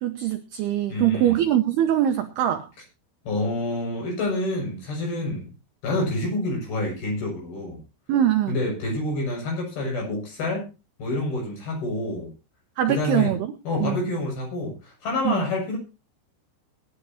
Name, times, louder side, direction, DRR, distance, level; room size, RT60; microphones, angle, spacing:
voice 1, 0.0-2.7 8.1-8.6 12.8-13.5 13.8-14.1 15.2-15.5, right 11 dB, 80° right, 7 dB, 2.4 m, -23 dB
voice 2, 0.9-1.4 3.2-5.5 5.8-7.8 8.5-10.7 11.0-12.3 12.9-13.3 13.7-15.8, left 2 dB, 50° left, 0 dB, 8.8 m, -27 dB
23.0 x 11.0 x 2.9 m, 0.29 s
omnidirectional pair, 5.8 m